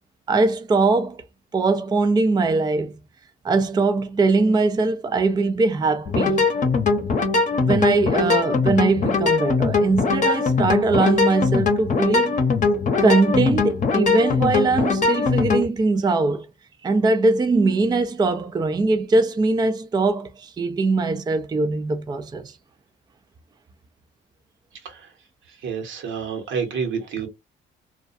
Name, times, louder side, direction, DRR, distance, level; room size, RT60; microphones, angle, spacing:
voice 1, 0.3-1.2 1.5-2.9 3.4-6.4 7.6-12.4 13.0-16.5 16.8-22.5, right 3 dB, 20° right, 0.4 m, -21 dB
sound 1, 6.1-15.7, left 4 dB, 40° left, 0.8 m, -21 dB
voice 2, 25.6-27.3, right 6 dB, 75° right, 1.0 m, -28 dB
2.3 x 2.2 x 2.5 m
cardioid pair, 90°, 20 cm